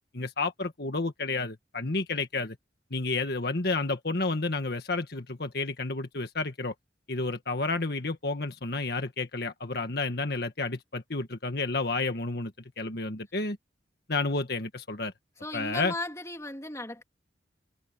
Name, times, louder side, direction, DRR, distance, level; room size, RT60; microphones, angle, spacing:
voice 1, 0.1-2.6 2.9-6.7 7.1-12.5 12.8-13.6 14.1-15.1 15.5-15.9, left 3 dB, 55° left, 1.6 m, -30 dB
voice 2, 15.4-17.0, left 2 dB, 15° left, 3.1 m, -36 dB
head